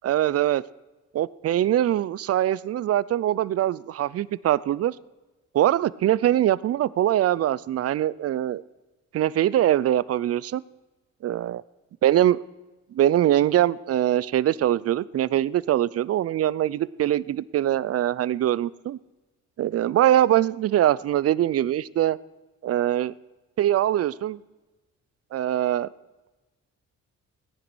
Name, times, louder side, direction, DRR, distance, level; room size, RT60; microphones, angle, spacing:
voice 1, 0.0-0.6 1.1-4.9 5.5-8.6 9.1-10.6 11.2-11.6 12.0-12.4 12.9-19.0 19.6-22.2 22.6-23.1 23.6-24.4 25.3-25.9, right 12 dB, 50° right, 20 dB, 0.5 m, -22 dB
17.5 x 10.0 x 6.2 m, 1.2 s
cardioid pair, 90°, 30 cm